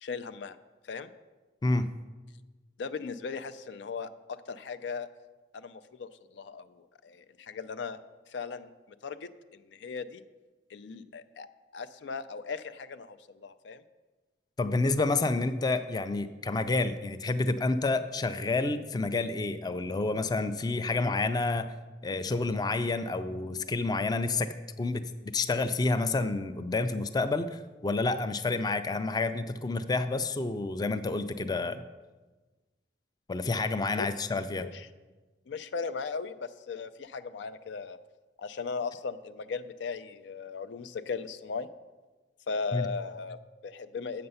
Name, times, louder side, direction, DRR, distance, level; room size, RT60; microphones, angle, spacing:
voice 1, 0.0-0.6 0.9-1.1 2.8-4.1 4.5-5.1 5.5-6.7 7.0-8.0 8.3-8.7 9.0-9.3 9.7-10.2 10.7-11.5 11.7-13.8 34.0-34.1 34.6-34.9 35.5-38.0 38.4-41.7 42.5-44.3, left 5 dB, 90° left, 12 dB, 0.4 m, -37 dB
voice 2, 14.6-21.7 22.0-31.8 33.3-34.7 42.7-42.9, left 3 dB, 25° left, 10 dB, 0.3 m, -29 dB
7.8 x 6.7 x 5.5 m, 1.2 s
head